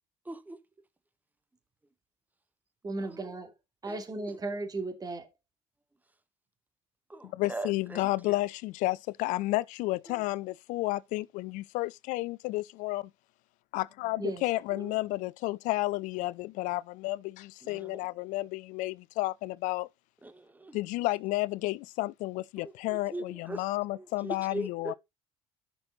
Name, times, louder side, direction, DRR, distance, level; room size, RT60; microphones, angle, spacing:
voice 1, 0.3-0.6 7.1-8.1 14.8-14.9 17.6-18.0 20.2-20.8 22.6-23.6 23.9-24.9, right 1 dB, 10° right, 1.4 m, -40 dB
voice 2, 2.8-3.5 3.8-5.3 14.2-14.5, right 2 dB, 30° right, 2.8 m, -36 dB
voice 3, 7.2-13.1 13.7-19.9 20.7-24.9, left 19 dB, 70° left, 0.5 m, -32 dB
11.5 x 6.2 x 4.0 m
hypercardioid pair, 65°, 14 cm